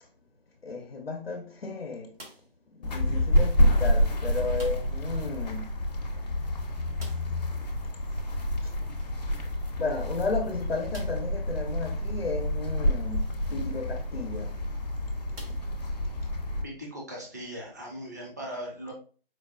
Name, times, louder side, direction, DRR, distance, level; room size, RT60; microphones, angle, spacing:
voice 1, 0.6-2.1 2.7-5.7 8.6-8.7 9.8-14.6 16.2-16.3, left 3 dB, 80° left, 0.7 m, -34 dB
sound 1, 2.1-2.7 4.5-5.1 5.4-5.5 5.8-5.9 6.9-7.5 9.3-9.4 10.0-10.1 10.9-11.4 12.1-12.2 14.2-14.4 15.3-16.2, right 1 dB, 75° right, 1.3 m, -49 dB
sound 2, 2.8-16.6, equal, 45° left, 0.7 m, -28 dB
voice 2, 16.5-18.9, equal, 20° right, 0.5 m, -39 dB
4.5 x 2.2 x 2.4 m
figure-of-eight pair, 155°, 29 cm